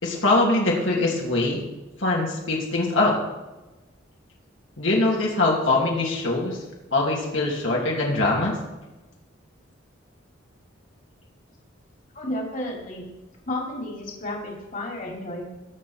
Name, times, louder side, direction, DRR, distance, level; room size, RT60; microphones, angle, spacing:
voice 1, 0.0-1.6 2.0-3.2 4.8-6.6 6.9-8.5, left 2 dB, 70° left, -3 dB, 2.7 m, -22 dB
voice 2, 12.1-13.1 13.5-15.4, left 1 dB, 40° left, -1 dB, 2.9 m, -32 dB
20.0 x 7.6 x 4.4 m, 1.1 s
head